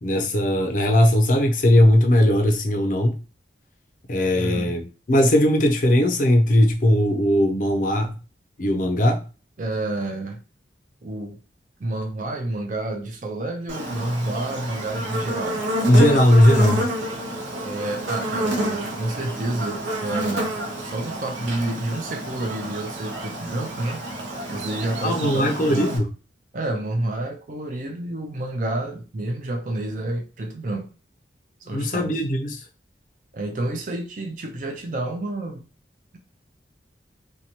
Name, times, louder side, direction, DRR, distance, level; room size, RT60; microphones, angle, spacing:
voice 1, 0.0-3.2 4.1-8.2 8.6-9.2 15.9-16.9 25.0-26.1 31.7-32.6, left 1 dB, 45° left, 0.5 m, -18 dB
voice 2, 4.4-4.7 9.6-10.4 11.0-11.4 11.8-15.6 17.6-24.0 24.5-25.9 26.5-30.9 31.7-32.2 33.3-35.6, right 2 dB, 45° right, 0.5 m, -29 dB
Buzz, 13.7-26.0, right 1 dB, 80° right, 0.7 m, -29 dB
2.8 x 2.2 x 2.8 m
head